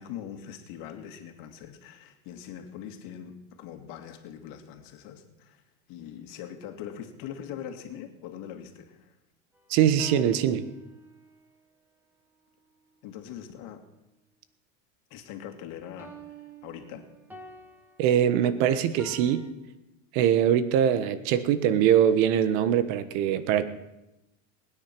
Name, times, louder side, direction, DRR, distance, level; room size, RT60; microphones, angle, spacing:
voice 1, 0.0-5.6 5.9-9.2 13.0-13.8 15.1-17.1, left 9 dB, 60° left, 6 dB, 2.3 m, -42 dB
sound 1, 9.5-11.4 16.0-19.5, right 3 dB, 5° right, 2.5 m, -47 dB
voice 2, 9.7-10.6 18.0-19.5 20.1-23.6, right 9 dB, 60° right, 13 dB, 1.3 m, -22 dB
20.5 x 9.7 x 6.0 m, 0.94 s
supercardioid pair, 115°, 38 cm